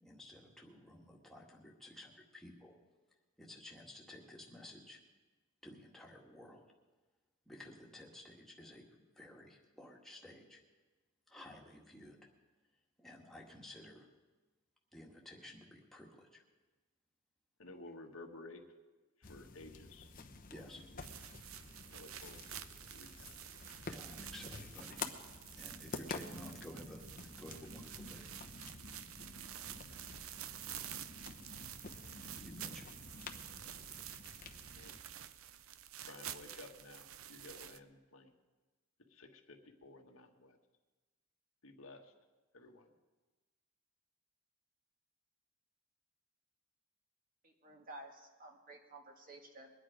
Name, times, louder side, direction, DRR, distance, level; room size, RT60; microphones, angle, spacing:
voice 1, 0.0-2.8 3.4-5.0 5.6-6.6 7.5-8.9 9.2-10.6 11.3-12.2 13.0-14.1 14.9-16.4 20.5-20.8 23.9-25.0 25.6-28.3 32.4-32.9, left 1 dB, ahead, -2 dB, 1.9 m, -53 dB
voice 2, 17.6-18.6 19.2-20.1 20.5-21.1 21.9-22.6 22.9-23.3 34.7-35.0 36.0-38.3 39.1-40.6 41.6-42.1 42.5-42.9, left 2 dB, 80° left, 3 dB, 1.5 m, -54 dB
sound 1, 19.2-35.0, left 4 dB, 40° left, 0.9 m, -50 dB
sound 2, 21.0-37.8, right 11 dB, 80° right, 0.6 m, -50 dB
voice 3, 47.4-49.7, right 1 dB, 40° right, 2 dB, 1.9 m, -53 dB
22.5 x 9.6 x 5.1 m, 1.3 s
head